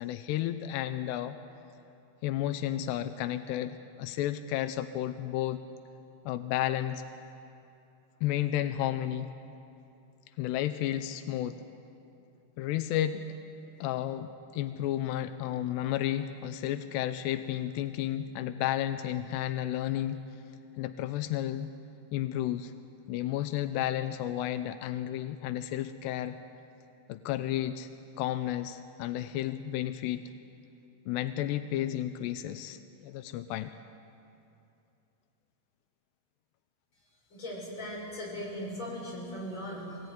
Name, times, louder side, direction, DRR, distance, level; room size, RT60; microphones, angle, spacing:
voice 1, 0.0-1.4 2.2-5.6 6.3-7.0 8.2-9.3 10.4-11.6 12.6-13.5 13.8-20.2 20.8-21.7 22.1-22.7 23.1-26.4 27.1-27.9 28.2-30.3 31.1-33.7, left 12 dB, 85° left, 10 dB, 2.4 m, -32 dB
voice 2, 37.3-40.0, equal, 20° left, -3 dB, 7.2 m, -38 dB
24.5 x 18.5 x 9.7 m, 2.7 s
omnidirectional pair, 5.8 m